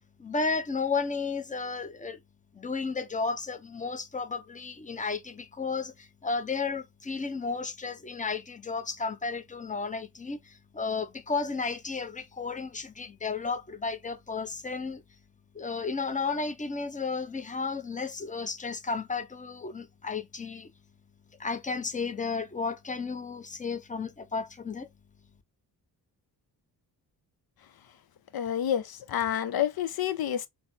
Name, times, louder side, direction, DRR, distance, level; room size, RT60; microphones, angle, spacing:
voice 1, 0.2-2.2 2.5-15.0 15.5-20.7 21.4-24.9, left 4 dB, 20° left, 0.7 m, -33 dB
voice 2, 28.3-28.8 29.1-30.5, left 10 dB, 65° left, 0.7 m, -28 dB
3.9 x 2.1 x 2.7 m
cardioid pair, 55°, 40 cm